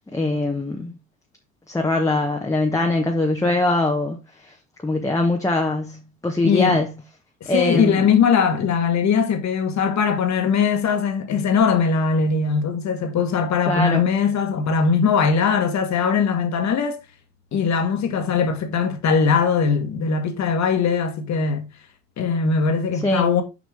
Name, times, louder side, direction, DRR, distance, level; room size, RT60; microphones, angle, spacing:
voice 1, 0.1-0.9 1.7-4.2 4.4-4.5 4.8-6.9 7.5-8.1 13.7-14.0 23.0-23.3, left 2 dB, 10° left, 1.2 m, -22 dB
voice 2, 6.4-6.8 7.4-17.0 17.5-21.7 22.2-23.4, left 6 dB, 45° left, 1.7 m, -20 dB
6.5 x 5.1 x 3.5 m
hypercardioid pair, 70°, 39 cm